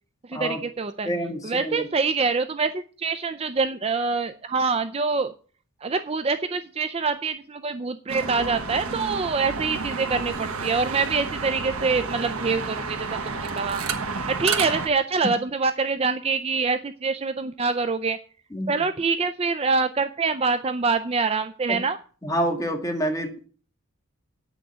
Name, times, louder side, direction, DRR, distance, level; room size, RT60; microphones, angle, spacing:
voice 1, 0.3-1.1 1.4-5.3 5.8-13.1 13.3-13.8 14.3-18.2 18.7-22.0, right 4 dB, 25° right, 10 dB, 0.4 m, -25 dB
voice 2, 1.0-1.8 18.5-18.7 21.7-21.8 22.2-23.5, equal, 15° left, 3 dB, 2.0 m, -27 dB
sound 1, 8.1-14.9, right 4 dB, 90° right, 1.3 m, -30 dB
9.0 x 6.1 x 8.1 m, 0.40 s
head